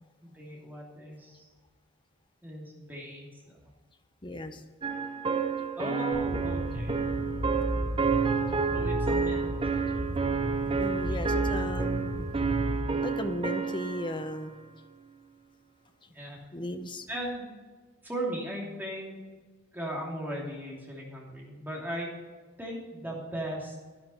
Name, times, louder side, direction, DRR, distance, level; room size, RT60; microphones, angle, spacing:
voice 1, 0.2-1.5 2.4-3.6 5.8-7.0 8.7-9.5 11.1-11.2 11.5-11.6 16.1-16.4 17.1-17.6 18.0-19.2 19.7-22.1 22.6-23.7, right 1 dB, 10° right, -3 dB, 2.7 m, -37 dB
voice 2, 4.2-4.6 10.7-12.3 13.0-14.5 16.5-17.1, left 1 dB, 20° left, 8 dB, 0.8 m, -36 dB
sound 1, 4.8-14.3, right 5 dB, 25° right, 0.6 m, -30 dB
sound 2, 6.1-12.8, equal, 65° right, 3.6 m, -33 dB
11.0 x 10.5 x 4.3 m, 1.4 s
head